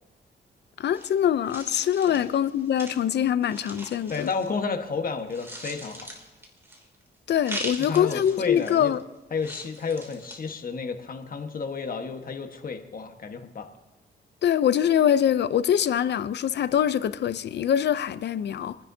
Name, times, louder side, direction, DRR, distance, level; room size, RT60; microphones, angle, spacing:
voice 1, 0.8-4.3 7.3-9.0 14.4-18.8, left 9 dB, 70° left, 0.6 m, -24 dB
sound 1, 0.9-4.9 5.2-7.0 7.4-9.0 9.4-10.5, right 1 dB, 15° right, 2.8 m, -40 dB
voice 2, 4.1-6.1 7.9-8.9 9.3-13.7, left 5 dB, 50° left, 1.5 m, -31 dB
29.0 x 10.0 x 2.8 m
cardioid pair, 90°, 18 cm